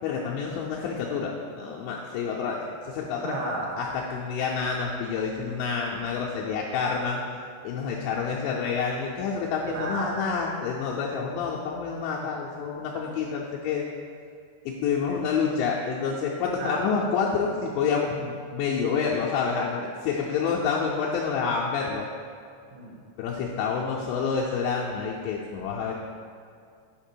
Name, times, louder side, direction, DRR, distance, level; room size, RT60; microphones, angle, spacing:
voice 1, 0.0-3.4 3.8-7.2 7.6-13.9 14.7-22.1 23.2-25.9, left 5 dB, 85° left, -4 dB, 2.6 m, -28 dB
voice 2, 3.2-3.7 9.6-10.1 13.1-13.2 15.1-15.2 16.5-16.9 22.7-23.0 25.8-25.9, right 3 dB, 90° right, -3 dB, 3.2 m, -33 dB
6.6 x 5.2 x 4.4 m, 2.3 s
omnidirectional pair, 5.3 m